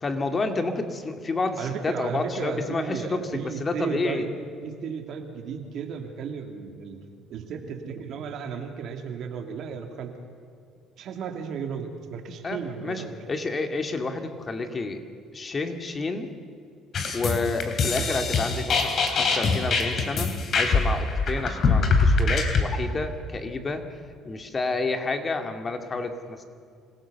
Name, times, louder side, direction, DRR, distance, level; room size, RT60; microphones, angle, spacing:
voice 1, 0.0-4.3 12.4-15.0 15.3-16.3 17.1-23.8 24.2-26.4, left 3 dB, 30° left, 6 dB, 2.2 m, -30 dB
voice 2, 1.6-4.3 4.6-7.0 7.3-10.1 11.0-13.1, right 6 dB, 65° right, 4 dB, 2.7 m, -34 dB
sound 1, 16.9-22.6, left 4 dB, 50° left, 3.1 m, -23 dB
26.0 x 16.5 x 7.0 m, 2.3 s
supercardioid pair, 90°, 0 cm